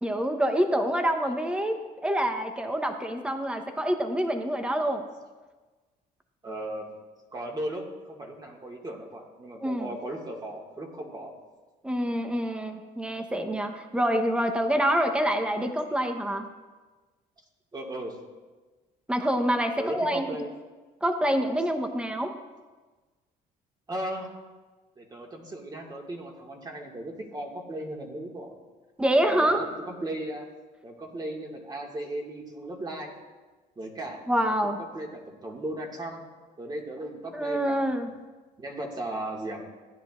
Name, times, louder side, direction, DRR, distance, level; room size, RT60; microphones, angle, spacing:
voice 1, 0.0-5.0 9.6-10.0 11.8-16.5 19.1-20.4 21.0-22.3 29.0-29.7 34.3-34.8 37.3-38.1, equal, 5° right, 6 dB, 0.9 m, -26 dB
voice 2, 6.4-6.9 7.3-11.4 17.7-18.2 19.8-20.5 23.9-24.3 25.0-28.5 29.3-30.5 30.8-33.1 33.8-36.3 36.6-38.0 38.6-39.6, right 1 dB, 25° right, 0 dB, 1.9 m, -36 dB
16.0 x 10.0 x 2.5 m, 1.3 s
cardioid pair, 110°, 17 cm